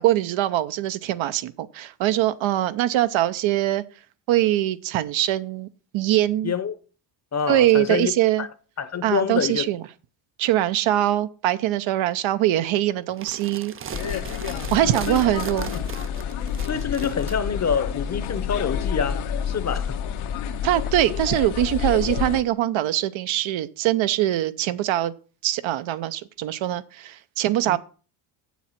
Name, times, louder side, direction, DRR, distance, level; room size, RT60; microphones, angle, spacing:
voice 1, 0.0-3.8 4.3-5.7 5.9-6.5 7.5-8.5 9.0-9.8 10.4-13.7 14.7-15.7 20.6-25.1 25.4-27.8, right 13 dB, 70° right, 0.8 m, -22 dB
voice 2, 6.4-6.7 7.3-8.1 8.4-8.5 8.8-9.7 15.1-15.2 16.6-20.0 27.7-27.8, left 6 dB, 35° left, 0.9 m, -26 dB
sound 1, 13.1-17.4, right 8 dB, 30° right, 0.5 m, -37 dB
sound 2, 13.9-22.4, left 8 dB, 80° left, 1.3 m, -29 dB
7.3 x 7.2 x 5.8 m
cardioid pair, 100°, 49 cm